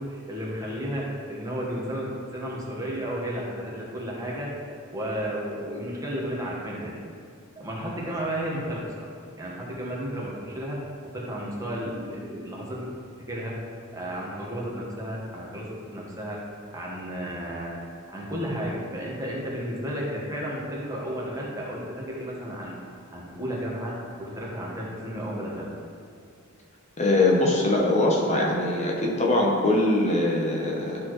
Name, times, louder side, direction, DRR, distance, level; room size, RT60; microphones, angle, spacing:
voice 1, 0.0-7.0 7.5-9.1 9.4-12.9 13.3-13.6 13.9-16.4 16.7-17.8 18.1-22.7 23.1-25.7, equal, 15° right, -5 dB, 1.3 m, -33 dB
voice 2, 27.0-31.0, left 2 dB, 35° left, -2 dB, 0.8 m, -22 dB
12.0 x 4.2 x 3.1 m, 2.3 s
head